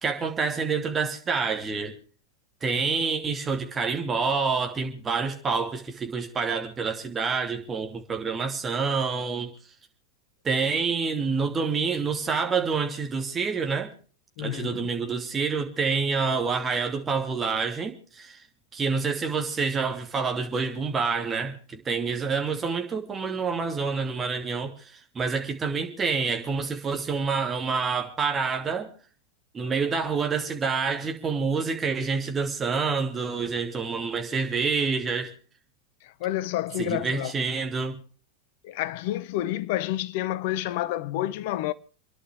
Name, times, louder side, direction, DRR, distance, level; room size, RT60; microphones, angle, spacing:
voice 1, 0.0-1.9 2.6-9.5 10.4-13.9 14.4-18.4 18.7-28.9 29.5-35.3 36.8-38.0, right 5 dB, 20° right, 2.9 m, -27 dB
voice 2, 14.4-14.9 36.0-37.4 38.6-41.7, left 14 dB, 50° left, 0.8 m, -29 dB
29.0 x 11.0 x 3.5 m
figure-of-eight pair, 90°, 0 cm